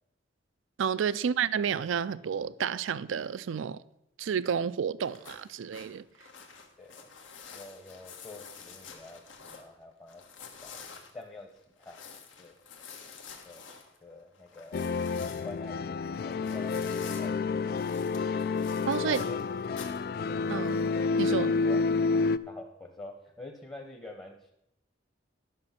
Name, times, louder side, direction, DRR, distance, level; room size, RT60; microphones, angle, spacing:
voice 1, 0.8-3.8 4.2-6.0 18.8-19.2 20.5-20.8 21.2-21.5, right 7 dB, 80° right, 0.4 m, -30 dB
sound 1, 5.0-9.7 10.1-17.3 17.7-20.1 20.5-20.9, left 6 dB, 80° left, 1.5 m, -48 dB
voice 2, 6.8-7.1 7.5-10.2 10.6-10.8 11.1-11.5 11.8-12.0 12.4-12.6 13.4-13.7 14.0-14.9 15.4-17.9 19.1-19.4 21.6-21.8 22.5-24.5, left 2 dB, 20° left, 0.9 m, -46 dB
sound 2, 14.7-22.4, left 4 dB, 50° left, 0.3 m, -29 dB
11.5 x 6.3 x 5.8 m
head